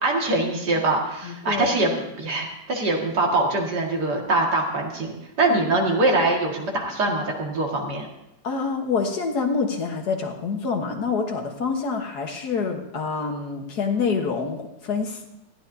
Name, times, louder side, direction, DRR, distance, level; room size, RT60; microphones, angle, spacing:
voice 1, 0.0-1.9 2.2-5.1 5.4-8.1, right 2 dB, 65° right, 0 dB, 2.6 m, -23 dB
voice 2, 1.2-2.0 8.4-15.3, left 5 dB, 65° left, 4 dB, 1.8 m, -27 dB
20.0 x 14.0 x 2.7 m, 0.87 s
omnidirectional pair, 1.9 m